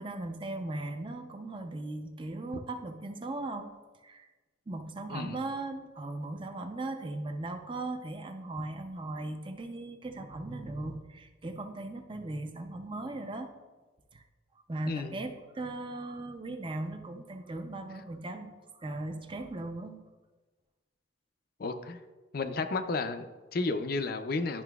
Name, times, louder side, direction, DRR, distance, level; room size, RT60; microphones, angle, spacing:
voice 1, 0.0-3.7 4.0-4.3 4.7-13.5 14.1-14.2 14.7-20.0, right 2 dB, 25° right, 6 dB, 0.5 m, -38 dB
voice 2, 21.6-22.0 22.3-24.6, left 3 dB, 50° left, 9 dB, 0.5 m, -32 dB
11.0 x 5.8 x 2.3 m, 1.3 s
head